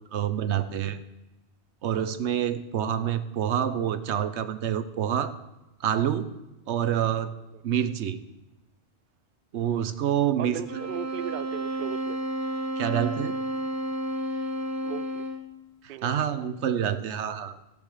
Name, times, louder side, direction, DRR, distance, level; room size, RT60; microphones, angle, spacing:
voice 1, 0.1-1.0 1.8-5.3 5.8-6.3 6.7-7.3 7.6-8.2 9.5-10.6 12.8-13.3 15.8-17.6, right 9 dB, 85° right, 12 dB, 1.0 m, -27 dB
voice 2, 10.4-12.2 14.8-15.3 15.9-16.1, right 10 dB, 60° right, 14 dB, 0.6 m, -37 dB
sound 1, 10.7-15.5, right 1 dB, 15° right, 0.9 m, -31 dB
15.0 x 7.0 x 4.9 m, 1.0 s
omnidirectional pair, 1.1 m